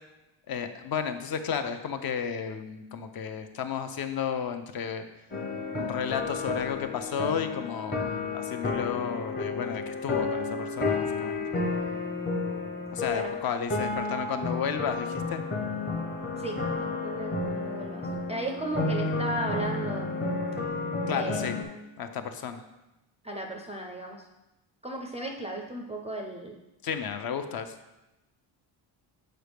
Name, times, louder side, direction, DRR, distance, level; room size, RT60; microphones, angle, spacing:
voice 1, 0.5-5.0 5.7-8.1 8.3-11.4 12.9-15.5 21.1-21.6 22.0-22.6 26.8-27.7, left 7 dB, 50° left, 8 dB, 0.6 m, -32 dB
sound 1, 5.3-21.6, left 3 dB, 20° left, 0.8 m, -31 dB
voice 2, 13.1-13.4 16.4-20.1 21.1-21.5 23.2-24.3 24.8-26.6, right 1 dB, 15° right, 1 dB, 0.3 m, -35 dB
7.8 x 4.8 x 3.4 m, 0.99 s
cardioid pair, 145°, 47 cm